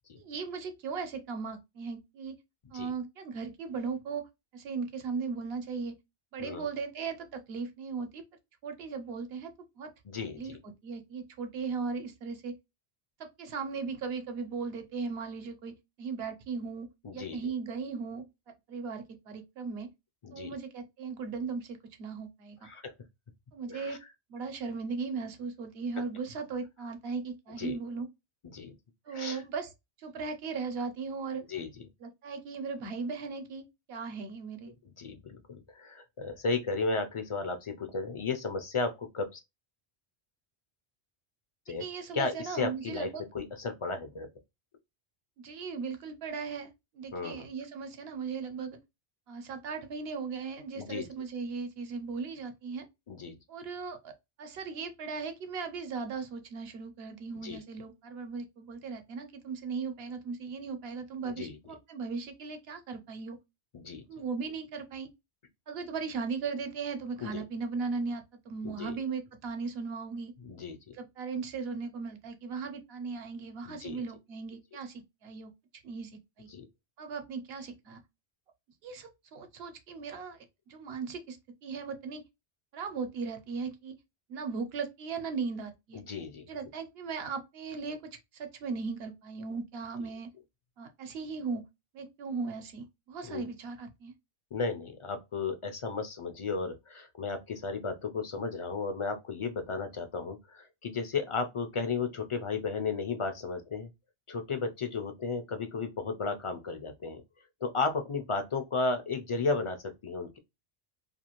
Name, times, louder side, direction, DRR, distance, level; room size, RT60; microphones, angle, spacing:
voice 1, 0.1-2.3 2.7-4.3 4.5-5.9 6.3-8.2 8.6-9.9 10.4-12.5 13.2-15.7 16.0-16.9 17.1-18.2 18.7-19.9 20.3-22.6 23.5-24.0 24.3-28.1 29.1-29.7 30.0-31.4 32.0-34.7 41.8-43.3 45.4-48.8 49.3-52.9 53.5-63.4 64.1-65.1 65.7-70.3 70.9-75.5 75.8-76.1 76.4-76.5 77.0-78.0 78.8-80.4 80.7-82.2 82.7-83.9 84.3-86.0 86.5-90.3 90.8-91.6 91.9-94.1, right 5 dB, 70° right, 0.9 m, -37 dB
voice 2, 10.1-10.5 17.0-17.4 20.2-20.5 22.6-22.9 23.7-24.0 27.6-27.8 28.5-28.7 29.1-29.4 31.5-31.7 35.0-39.4 41.7-41.9 42.1-43.1 43.3-44.3 47.1-47.5 50.7-51.1 53.1-53.4 57.4-57.6 61.3-61.6 63.7-64.0 67.2-67.4 68.6-69.0 70.4-70.9 73.6-74.0 76.5-76.7 85.9-86.5 93.2-93.4 94.5-103.9 104.3-107.2 107.6-110.4, left 4 dB, 50° left, 0.3 m, -34 dB
2.6 x 2.4 x 2.9 m
omnidirectional pair, 1.1 m